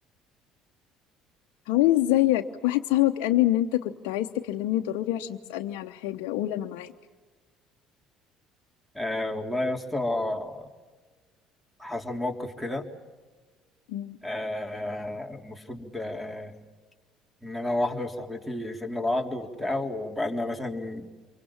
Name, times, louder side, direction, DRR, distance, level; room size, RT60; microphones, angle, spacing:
voice 1, 1.7-6.9 13.9-14.2, left 14 dB, 75° left, 4 dB, 0.9 m, -25 dB
voice 2, 8.9-10.7 11.8-12.9 14.2-16.5 17.4-21.1, left 1 dB, ahead, 5 dB, 3.6 m, -31 dB
28.0 x 24.5 x 7.3 m, 1.4 s
hypercardioid pair, 70°, 0 cm